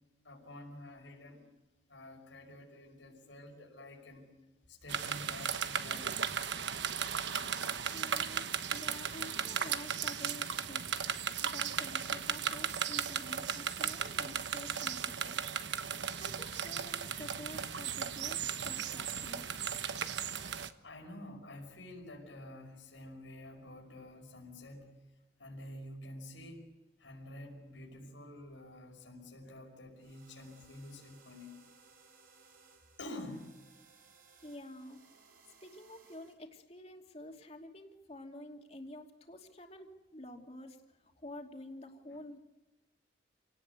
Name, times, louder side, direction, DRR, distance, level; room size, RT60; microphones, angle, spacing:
voice 1, 0.2-1.4 1.9-4.2 4.7-6.2 7.5-7.6 20.8-24.9 25.4-26.7 27.0-31.5 33.0-33.6 42.1-42.2, left 1 dB, 90° left, 1 dB, 5.7 m, -49 dB
sound 1, 4.9-20.7, right 7 dB, 75° right, 1.2 m, -36 dB
voice 2, 7.9-10.9 11.4-15.4 16.2-19.5 34.4-35.0 35.6-40.8 41.2-42.4, left 1 dB, 35° left, 3 dB, 2.7 m, -49 dB
sound 2, 30.0-36.3, right 5 dB, 50° right, 4.6 m, -63 dB
28.5 x 18.5 x 8.3 m, 1.1 s
head